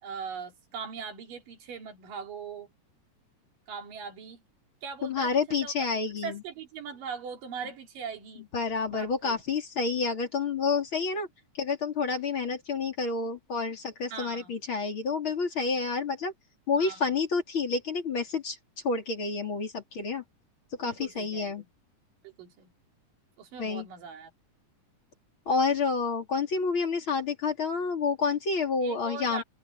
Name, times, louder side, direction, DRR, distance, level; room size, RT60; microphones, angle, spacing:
voice 1, 0.0-2.7 3.7-4.4 4.8-5.7 6.2-8.5 8.9-9.4 14.1-14.5 16.8-17.1 20.9-21.7 22.2-22.7 23.4-24.3 28.8-29.4, right 6 dB, 90° right, 4.5 m, -40 dB
voice 2, 5.0-6.4 8.5-11.3 11.6-16.3 16.7-18.6 18.8-20.2 20.8-21.6 23.6-23.9 25.5-29.4, left 4 dB, 40° left, 3.7 m, -29 dB
omnidirectional pair, 3.8 m